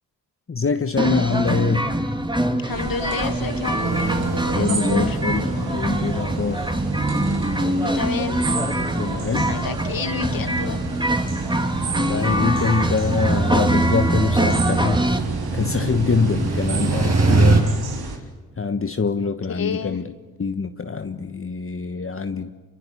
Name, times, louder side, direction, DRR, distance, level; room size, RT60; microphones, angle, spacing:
voice 1, 0.5-1.9 4.5-6.6 9.0-9.5 12.0-15.0 15.5-17.7 18.6-20.0 20.4-22.5, left 5 dB, 35° left, 1.3 m, -24 dB
sound 1, 1.0-15.2, right 1 dB, 10° right, 3.1 m, -24 dB
voice 2, 2.6-4.1 4.5-5.2 7.6-8.4 9.4-10.8 19.2-20.0, left 6 dB, 65° left, 2.4 m, -30 dB
sound 2, 2.7-18.2, right 4 dB, 75° right, 3.7 m, -30 dB
sound 3, 3.8-17.6, right 3 dB, 45° right, 6.7 m, -26 dB
25.5 x 23.5 x 9.8 m
supercardioid pair, 50°, 38 cm